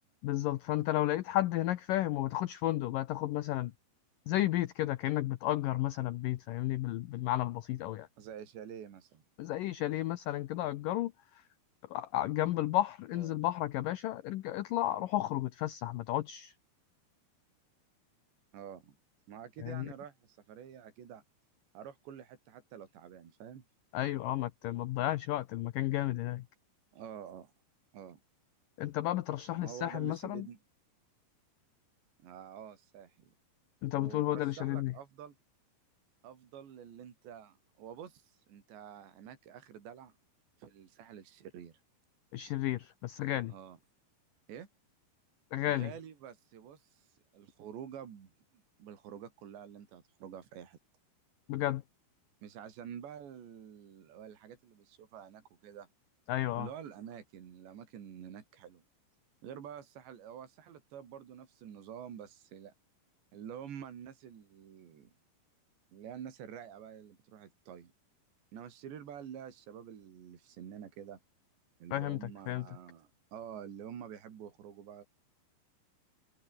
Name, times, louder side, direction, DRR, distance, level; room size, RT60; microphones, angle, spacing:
voice 1, 0.2-3.7 4.3-8.1 9.4-11.4 11.9-16.5 19.6-19.9 23.9-26.5 28.8-30.5 33.8-34.9 42.3-43.5 45.5-45.9 51.5-51.8 56.3-56.7 71.9-72.7, left 14 dB, 85° left, 1.9 m, -33 dB
voice 2, 8.2-9.2 13.1-13.4 18.5-19.0 19.3-21.2 21.8-23.6 26.9-27.5 27.9-28.2 29.5-30.6 32.2-33.3 33.9-35.4 36.2-40.1 40.6-41.7 43.5-43.8 44.5-44.7 45.7-48.3 48.8-50.8 52.4-55.9 56.6-58.8 59.4-62.7 63.3-65.1 65.9-67.9 68.5-71.2 71.8-75.0, right 9 dB, 80° right, 5.4 m, -48 dB
omnidirectional pair, 5.0 m